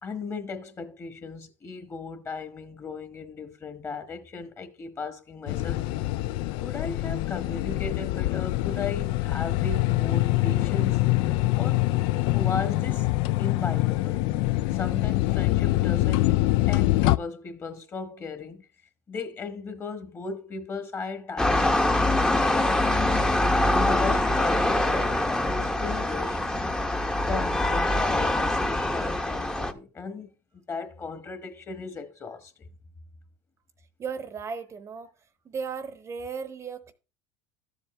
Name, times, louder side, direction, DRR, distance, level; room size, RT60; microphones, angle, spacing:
voice 1, 0.0-5.9 6.6-11.1 11.5-11.9 12.3-13.1 13.4-14.3 14.7-16.4 16.7-18.6 19.1-23.0 23.7-26.4 27.3-30.3 30.5-32.5, left 4 dB, 25° left, 1.3 m, -36 dB
sound 1, 5.5-17.2, left 17 dB, 65° left, 0.3 m, -24 dB
sound 2, 21.4-29.7, left 1 dB, 10° left, 0.8 m, -24 dB
voice 2, 34.0-35.1 35.4-36.9, right 5 dB, 30° right, 0.8 m, -35 dB
13.0 x 7.3 x 3.2 m
supercardioid pair, 110°, 9 cm